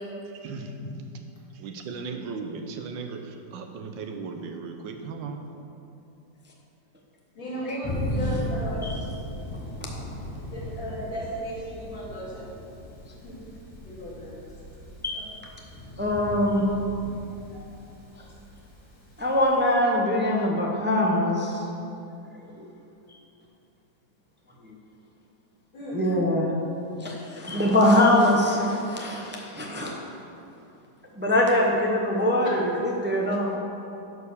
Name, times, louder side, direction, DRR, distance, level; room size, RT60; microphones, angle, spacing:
voice 1, 0.3-0.7 1.5-5.5, right 4 dB, 80° right, 5 dB, 1.5 m, -36 dB
voice 2, 7.3-8.9 10.5-12.5 13.2-13.4 13.8-14.4 15.1-15.2 17.5-17.6 25.7-26.2, equal, 85° left, -7 dB, 3.3 m, -35 dB
Thunder, 7.8-19.7, equal, 15° left, 1.3 m, -36 dB
voice 3, 16.0-16.6 19.2-21.4 22.6-22.7 24.6-24.7 25.9-26.6 27.0-29.9 31.2-33.6, left 1 dB, 15° right, -1 dB, 0.4 m, -23 dB
11.0 x 4.9 x 6.6 m, 2.7 s
omnidirectional pair, 2.0 m